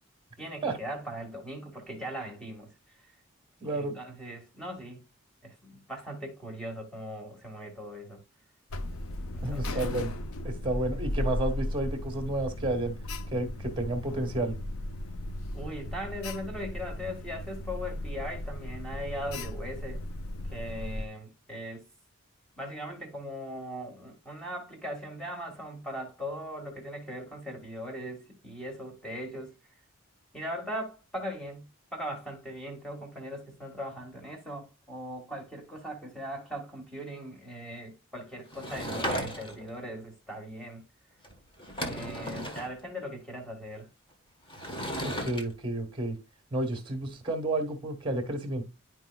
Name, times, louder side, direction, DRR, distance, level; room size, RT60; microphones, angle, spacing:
voice 1, 0.4-2.7 3.7-5.0 5.4-8.2 9.3-9.9 15.5-20.0 20.5-21.8 22.6-29.5 30.3-40.8 41.8-43.9, equal, 5° left, 1.8 m, -39 dB
voice 2, 3.6-4.0 9.4-10.1 10.4-12.9 13.3-14.5 45.0-46.2 46.5-48.6, right 2 dB, 25° right, 1.6 m, -31 dB
Alarm, 8.7-21.1, left 1 dB, 75° left, 0.6 m, -36 dB
Sliding door / Wood, 38.5-39.7 41.2-41.3 41.6-42.7 44.5-45.4, equal, 25° left, 1.3 m, -35 dB
11.0 x 4.6 x 2.3 m
head